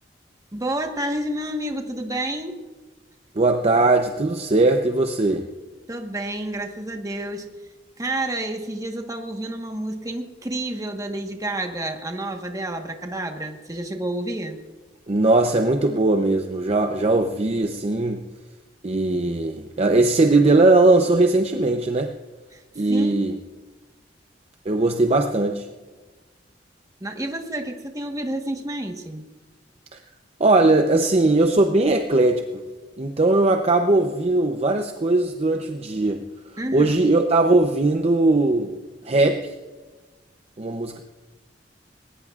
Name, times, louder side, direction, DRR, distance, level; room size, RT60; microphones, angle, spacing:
voice 1, 0.5-2.6 5.9-7.5 8.0-14.6 22.5-23.1 27.0-29.2 36.6-37.0, right 1 dB, 20° right, 4 dB, 1.3 m, -29 dB
voice 2, 3.4-5.4 15.1-18.3 18.8-22.1 22.8-23.3 24.7-25.7 29.9-30.0 30.4-32.4 33.0-36.2 36.7-38.8 39.0-39.5 40.6-41.0, right 2 dB, 35° right, 5 dB, 0.7 m, -19 dB
20.0 x 19.5 x 2.5 m, 1.3 s
head